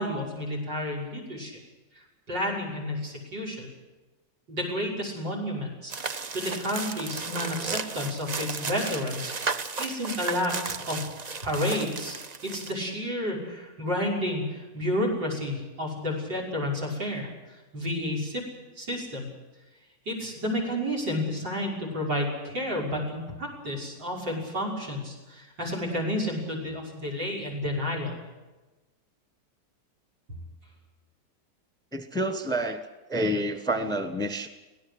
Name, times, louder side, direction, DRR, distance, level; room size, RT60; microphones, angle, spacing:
voice 1, 0.0-1.6 1.9-3.7 4.5-11.1 11.4-12.2 12.5-18.4 18.8-19.3 20.1-28.1, left 1 dB, 85° right, 3 dB, 6.8 m, -31 dB
sound 1, 5.9-12.7, right 4 dB, 45° right, 0.5 m, -34 dB
voice 2, 31.9-32.8 33.1-34.5, right 1 dB, 5° left, 9 dB, 1.1 m, -28 dB
24.0 x 17.5 x 8.1 m, 1.1 s
omnidirectional pair, 1.9 m